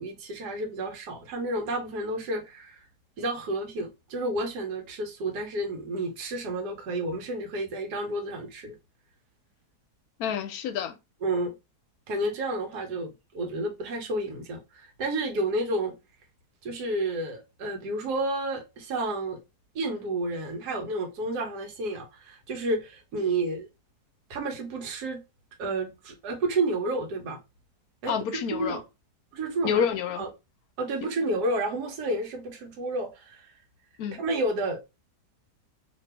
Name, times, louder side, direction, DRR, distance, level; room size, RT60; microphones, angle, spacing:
voice 1, 0.0-2.8 3.2-8.8 11.2-11.5 12.1-15.9 16.6-19.4 19.7-23.7 24.3-25.2 25.6-27.4 28.0-28.1 28.5-28.8 29.3-29.8 30.2-30.3 30.8-33.5 34.2-34.8, right 2 dB, 75° right, 1.4 m, -30 dB
voice 2, 10.2-11.0 28.1-28.8 29.6-30.2 34.0-34.2, left 7 dB, 70° left, 1.0 m, -28 dB
2.9 x 2.6 x 3.3 m
omnidirectional pair, 1.8 m